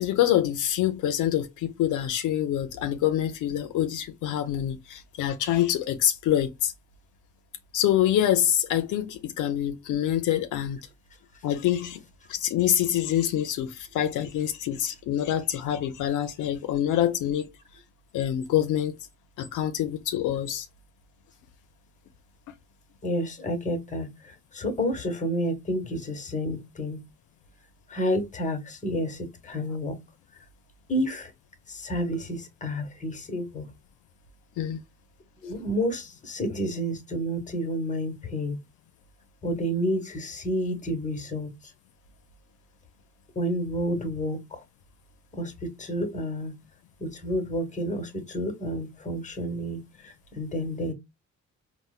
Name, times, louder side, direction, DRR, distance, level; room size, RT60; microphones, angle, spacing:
voice 1, 0.0-6.7 7.7-10.8 11.4-12.0 12.3-17.5 18.1-19.0 19.4-20.7 34.6-34.8, left 11 dB, 80° left, 0.5 m, -26 dB
voice 2, 23.0-27.0 27.9-30.0 30.9-31.3 31.7-33.7 35.4-38.6 39.4-41.5 43.3-44.6 45.3-46.5 47.0-50.9, equal, 25° left, 1.0 m, -30 dB
4.1 x 2.1 x 2.3 m
cardioid pair, 90°, 30 cm